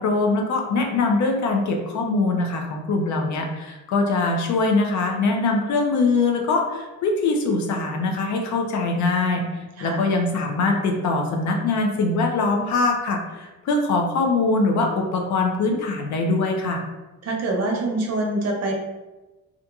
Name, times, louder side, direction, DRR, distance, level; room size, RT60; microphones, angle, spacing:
voice 1, 0.0-16.8, left 3 dB, 70° left, 2 dB, 0.6 m, -22 dB
voice 2, 17.2-18.7, right 2 dB, 55° right, -1 dB, 0.7 m, -25 dB
2.8 x 2.5 x 2.3 m, 1.1 s
cardioid pair, 90°, 30 cm